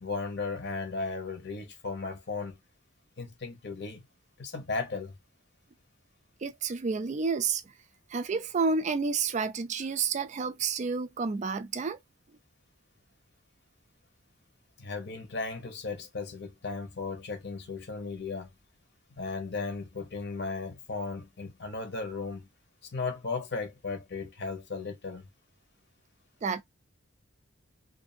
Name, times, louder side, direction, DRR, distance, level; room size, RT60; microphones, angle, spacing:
voice 1, 0.0-2.6 3.2-4.0 4.4-5.1 14.8-18.5 19.2-22.5 22.9-25.3, left 4 dB, 60° left, 1.0 m, -36 dB
voice 2, 6.4-7.6 8.1-12.0 26.4-26.6, right 5 dB, 35° right, 0.4 m, -30 dB
2.5 x 2.5 x 2.7 m
head